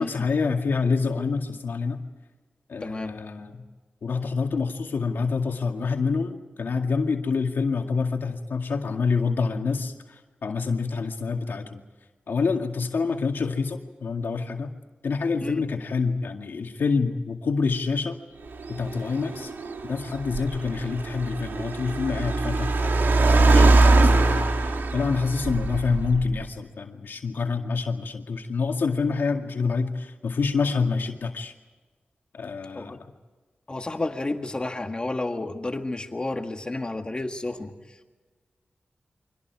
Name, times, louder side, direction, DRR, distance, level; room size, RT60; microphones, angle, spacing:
voice 1, 0.0-2.0 2.7-3.6 4.0-11.8 12.3-14.7 15.0-18.2 18.7-19.5 19.9-31.5 32.3-33.0, left 4 dB, 85° left, 3 dB, 2.1 m, -27 dB
voice 2, 2.8-3.2 15.4-15.6 32.7-33.0 33.7-37.7, left 2 dB, 30° left, 5 dB, 1.8 m, -31 dB
Car, 18.5-26.4, right 2 dB, 90° right, 1.8 m, -22 dB
30.0 x 24.5 x 4.8 m, 1.3 s
wide cardioid pair, 120°, 3 cm